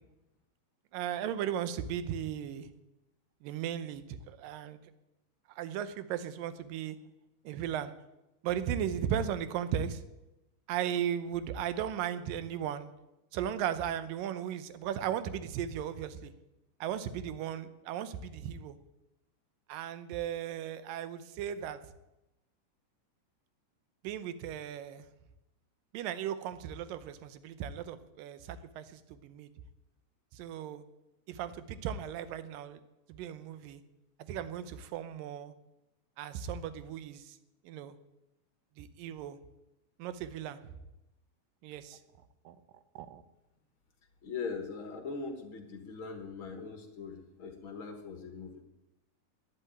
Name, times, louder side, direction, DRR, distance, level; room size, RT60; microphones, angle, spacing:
voice 1, 0.9-2.7 3.4-4.8 5.5-7.0 7.4-7.9 8.4-10.0 10.7-12.9 13.3-16.3 16.8-18.8 19.7-21.8 24.0-25.1 25.9-29.5 30.3-30.8 31.3-32.8 33.1-33.8 34.3-35.5 36.2-37.4 37.6-38.0 38.8-39.4 40.0-40.6 41.6-42.0 42.5-42.6 43.0-43.2, right 9 dB, 85° right, 13 dB, 2.6 m, -36 dB
voice 2, 44.2-48.6, left 4 dB, 50° left, 5 dB, 1.7 m, -41 dB
11.0 x 10.5 x 9.0 m, 0.95 s
omnidirectional pair, 3.8 m